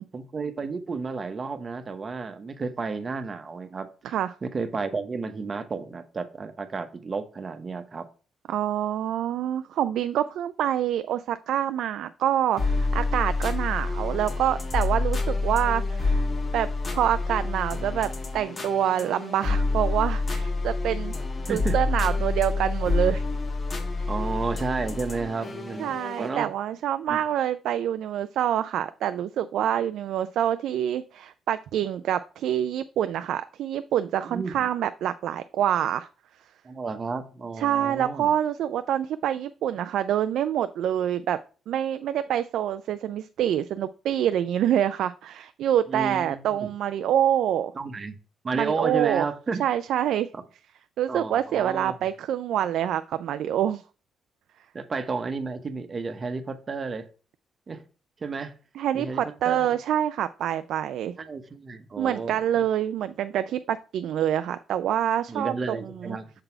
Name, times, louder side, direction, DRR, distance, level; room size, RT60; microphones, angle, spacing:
voice 1, 0.0-8.1 21.5-21.8 24.1-26.5 27.1-27.2 34.3-34.7 36.6-38.3 45.9-46.7 47.7-48.2 48.4-49.6 50.3-50.4 51.1-52.1 54.7-57.0 57.7-57.8 58.2-58.5 58.9-59.8 61.2-62.6 65.3-66.3, right 4 dB, 35° right, 0.9 m, -32 dB
voice 2, 4.0-4.4 8.5-16.2 16.5-21.1 21.5-23.2 25.8-36.1 37.6-41.4 41.7-47.7 48.5-49.3 49.6-50.3 51.0-53.8 58.8-61.1 62.0-66.2, right 10 dB, 80° right, 0.3 m, -26 dB
sound 1, 12.6-26.4, left 3 dB, 40° left, 1.3 m, -28 dB
6.6 x 4.0 x 4.4 m
cardioid pair, 90°, 0 cm